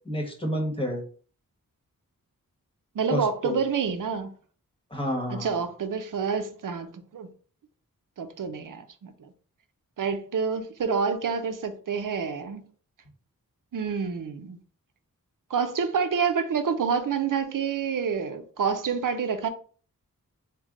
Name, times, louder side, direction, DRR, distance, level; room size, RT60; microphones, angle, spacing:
voice 1, 0.0-1.0 3.1-3.6 4.9-5.6, equal, 15° left, 1.2 m, -29 dB
voice 2, 2.9-4.3 5.3-6.9 7.1-7.3 8.2-9.3 10.0-12.6 13.7-14.6 15.5-19.5, right 6 dB, 65° right, 0.6 m, -28 dB
3.3 x 2.1 x 3.7 m
cardioid pair, 45°, 35 cm